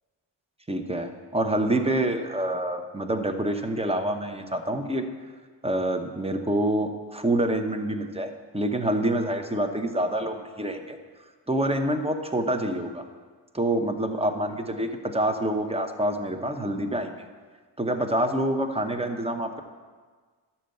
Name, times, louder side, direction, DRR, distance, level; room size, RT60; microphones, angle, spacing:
voice 1, 0.7-5.0 5.6-11.0 11.5-13.0 13.5-17.2 17.8-19.6, right 1 dB, 15° right, 6 dB, 0.9 m, -27 dB
12.5 x 4.5 x 7.8 m, 1.5 s
cardioid pair, 80°, 46 cm